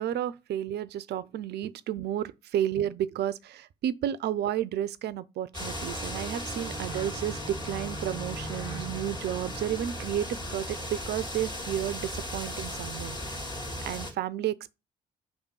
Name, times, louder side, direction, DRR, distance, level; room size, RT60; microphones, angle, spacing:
voice 1, 0.0-13.2 13.8-14.7, right 11 dB, 50° right, 0.4 m, -32 dB
sound 1, 5.5-14.1, left 1 dB, 20° left, 2.0 m, -36 dB
sound 2, 5.6-12.0, right 2 dB, 75° left, 2.3 m, -45 dB
4.9 x 3.6 x 5.4 m
figure-of-eight pair, 40°, 21 cm